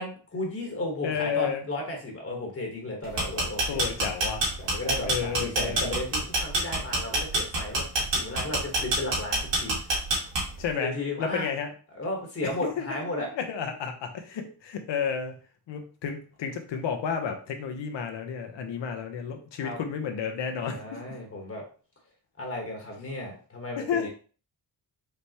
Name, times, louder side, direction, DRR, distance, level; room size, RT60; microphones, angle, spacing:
voice 1, 0.0-3.8 4.6-7.8 8.1-10.0 10.8-11.5 11.9-13.3 19.6-19.8 20.7-21.6 22.4-24.1, left 1 dB, 35° left, 1 dB, 1.2 m, -34 dB
voice 2, 1.0-1.6 3.7-4.4 5.1-5.9 10.6-11.7 12.8-12.9 13.3-15.4 15.7-21.0 23.7-24.1, left 7 dB, 85° left, 5 dB, 1.0 m, -31 dB
sound 1, 3.0-10.7, right 2 dB, 85° right, 2.4 m, -26 dB
5.0 x 3.3 x 2.8 m, 0.39 s
cardioid pair, 105°, 42 cm